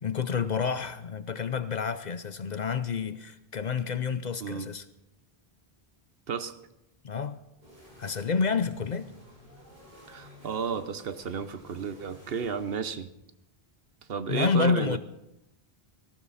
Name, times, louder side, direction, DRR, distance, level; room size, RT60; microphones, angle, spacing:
voice 1, 0.0-4.8 7.0-7.4 8.0-9.1 14.3-15.0, left 5 dB, 50° left, 0.7 m, -29 dB
sound 1, 7.6-12.8, equal, 45° right, 4.4 m, -53 dB
voice 2, 10.1-13.1 14.1-15.0, right 6 dB, 70° right, 1.1 m, -33 dB
18.5 x 14.5 x 4.1 m
omnidirectional pair, 1.0 m